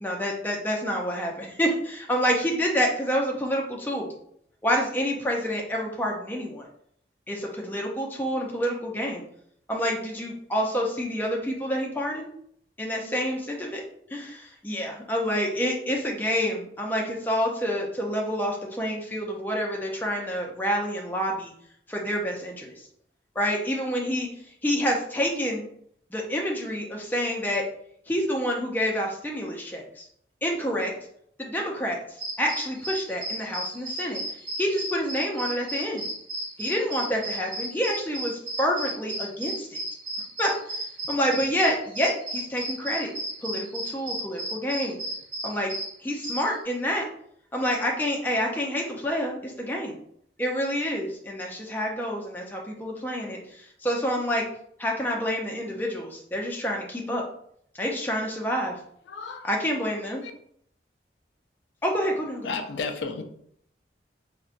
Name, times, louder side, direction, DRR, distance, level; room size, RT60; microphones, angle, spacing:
voice 1, 0.0-4.1 4.6-6.7 7.3-9.2 9.7-12.3 12.8-13.8 14.1-21.5 21.9-22.7 23.4-24.3 24.6-25.7 26.1-27.6 28.1-30.1 30.4-30.9 31.4-32.0 32.4-34.2 34.6-36.1 36.6-39.8 40.4-40.5 41.1-43.1 43.4-45.0 45.4-45.7 46.0-47.1 47.5-49.9 50.4-54.4 54.8-57.2 57.8-58.8 59.4-60.2 61.8-62.5, equal, 10° left, -1 dB, 0.4 m, -28 dB
sound 1, 32.2-46.5, right 1 dB, 15° right, 1.0 m, -34 dB
voice 2, 59.1-59.5 60.0-60.3 62.4-63.2, left 4 dB, 90° left, 6 dB, 0.4 m, -33 dB
3.9 x 2.2 x 2.4 m, 0.68 s
head